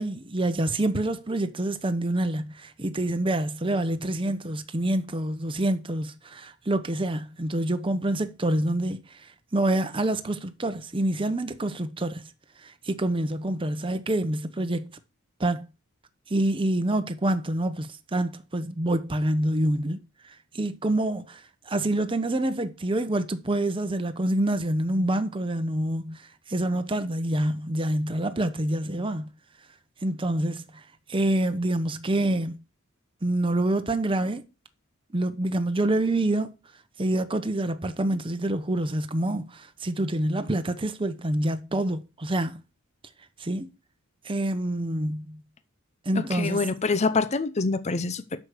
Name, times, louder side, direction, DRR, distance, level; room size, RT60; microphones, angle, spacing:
voice 1, 0.0-12.3 12.6-14.9 15.4-15.7 16.3-29.3 30.0-30.8 31.1-32.6 33.2-34.4 35.1-36.5 37.0-42.6 43.4-43.7 44.2-45.4 46.0-46.6, right 1 dB, 25° right, 0.8 m, -27 dB
voice 2, 46.1-48.4, left 4 dB, 30° left, 0.6 m, -26 dB
8.2 x 6.4 x 6.5 m
head